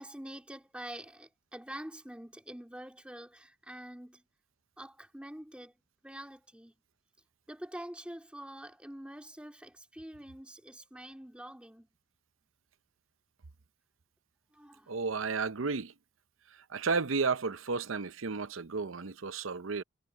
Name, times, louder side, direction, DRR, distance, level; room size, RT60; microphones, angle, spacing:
voice 1, 0.0-4.2 4.8-5.7 6.0-6.7 7.5-11.9 14.5-15.0, right 1 dB, 5° right, 2.7 m, -46 dB
voice 2, 14.9-15.9 16.7-19.8, right 4 dB, 80° right, 0.7 m, -32 dB
head